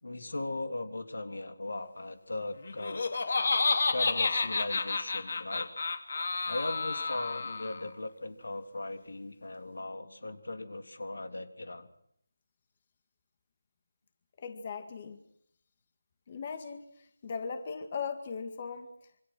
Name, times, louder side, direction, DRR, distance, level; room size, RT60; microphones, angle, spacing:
voice 1, 0.0-3.0 3.9-5.7 6.4-11.9, left 2 dB, 80° left, 7 dB, 3.4 m, -38 dB
Laughter, 2.6-7.9, left 3 dB, 55° left, 2.7 m, -30 dB
voice 2, 14.4-15.2 16.3-16.9 17.2-18.9, left 5 dB, 30° left, 8 dB, 2.0 m, -38 dB
27.5 x 25.0 x 6.2 m, 0.70 s
figure-of-eight pair, 170°, 0 cm